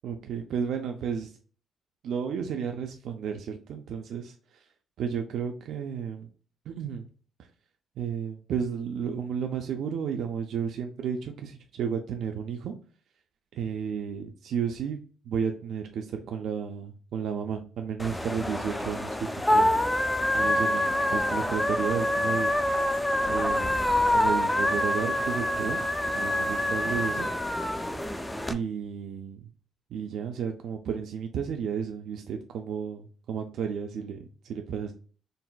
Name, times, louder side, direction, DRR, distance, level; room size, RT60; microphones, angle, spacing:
voice 1, 0.0-1.3 2.0-4.7 5.0-6.3 6.7-7.1 8.0-12.8 13.5-19.8 20.3-22.5 23.3-25.8 26.1-27.3 28.5-29.5 29.9-34.9, right 7 dB, 75° right, 4 dB, 0.3 m, -33 dB
sound 1, 18.0-28.5, left 1 dB, 10° left, 0.3 m, -26 dB
3.9 x 2.1 x 2.2 m, 0.41 s
cardioid pair, 90°, 0 cm